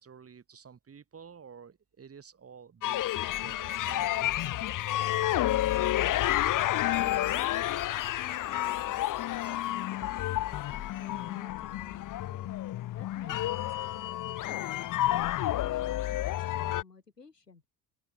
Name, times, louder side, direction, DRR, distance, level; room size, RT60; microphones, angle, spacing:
voice 1, 0.0-4.3, right 6 dB, 30° right, 6.6 m, -50 dB
sound 1, 2.8-16.8, left 14 dB, 40° left, 1.5 m, -30 dB
voice 2, 5.3-9.0 9.5-12.5 12.9-17.6, left 4 dB, 85° left, 4.4 m, -54 dB
open air
figure-of-eight pair, 60°, 47 cm